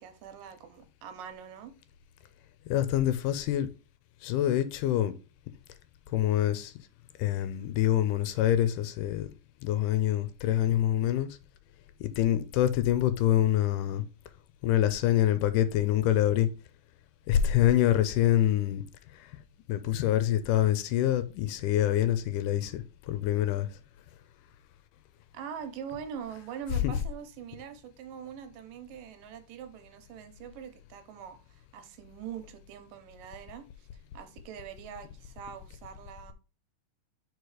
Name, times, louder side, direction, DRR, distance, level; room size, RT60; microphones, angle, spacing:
voice 1, 0.0-1.7 25.3-33.9 34.1-36.3, right 8 dB, 85° right, 2.5 m, -43 dB
voice 2, 2.7-3.7 4.2-5.1 6.1-6.7 7.2-9.3 9.6-11.4 12.0-14.0 14.6-16.5 17.3-18.8 19.1-19.3 19.7-23.7 26.8-26.9, left 12 dB, 80° left, 2.0 m, -26 dB
4.7 x 4.7 x 4.8 m
omnidirectional pair, 3.9 m